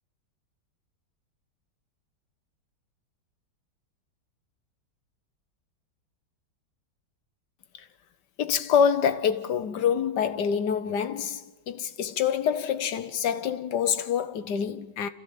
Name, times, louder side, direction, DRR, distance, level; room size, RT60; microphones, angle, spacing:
voice 1, 8.4-15.1, left 7 dB, 75° left, 1.6 m, -26 dB
29.0 x 15.5 x 7.1 m
omnidirectional pair, 1.9 m